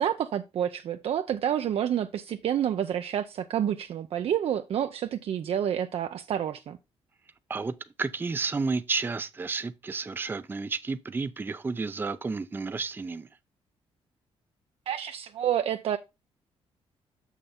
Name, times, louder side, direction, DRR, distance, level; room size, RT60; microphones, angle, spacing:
voice 1, 0.0-6.8 14.9-16.0, right 10 dB, 65° right, 0.6 m, -29 dB
voice 2, 7.5-13.3, right 4 dB, 20° right, 0.5 m, -31 dB
6.7 x 6.3 x 3.7 m
cardioid pair, 120°, 11 cm